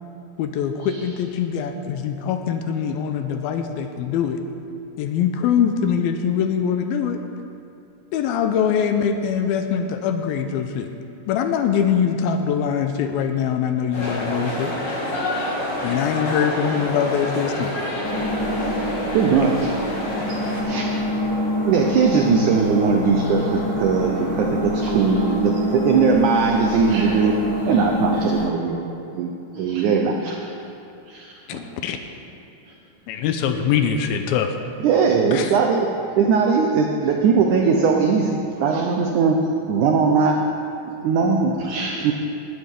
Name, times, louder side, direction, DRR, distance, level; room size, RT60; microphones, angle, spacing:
voice 1, 0.4-4.4 5.0-7.2 8.1-10.9 11.3-14.7 15.8-17.7 31.5-32.0 33.1-34.6 35.3-35.5, left 7 dB, 80° left, 7 dB, 2.4 m, -23 dB
sound 1, 13.9-20.6, left 1 dB, 45° left, 2.9 m, -28 dB
sound 2, 18.0-28.5, left 1 dB, 5° left, 2.6 m, -25 dB
voice 2, 19.1-19.6 21.6-27.3 27.7-30.3 34.8-40.5 40.9-41.6 42.0-42.1, right 5 dB, 75° right, 2 dB, 1.8 m, -20 dB
voice 3, 20.5-20.9 24.8-25.0 26.7-27.2 27.7-27.9 28.1-28.4 29.5-29.9 30.2-30.4 31.1-31.6 32.6-32.7 35.4-35.5 38.7-38.9 41.6-42.0, right 2 dB, 55° right, -4 dB, 3.4 m, -36 dB
19.5 x 11.5 x 3.7 m, 2.7 s
omnidirectional pair, 4.4 m